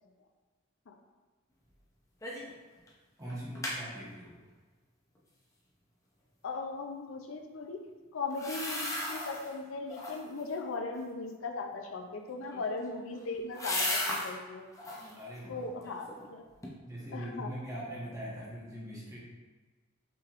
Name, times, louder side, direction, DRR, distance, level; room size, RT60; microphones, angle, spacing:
sound 1, 2.2-2.5 2.9-3.0 3.3-3.8 8.3-9.5 9.9-10.4 12.4-14.3 14.7-15.2 15.6-16.3 16.6-16.7, left 1 dB, 15° left, 0.6 m, -36 dB
voice 1, 3.2-4.3 14.9-15.7 16.8-19.2, equal, 15° right, -6 dB, 1.0 m, -42 dB
voice 2, 6.4-7.8 8.1-14.6 15.5-16.4 17.1-17.5, left 3 dB, 65° left, 4 dB, 0.5 m, -38 dB
5.6 x 3.4 x 2.5 m, 1.3 s
head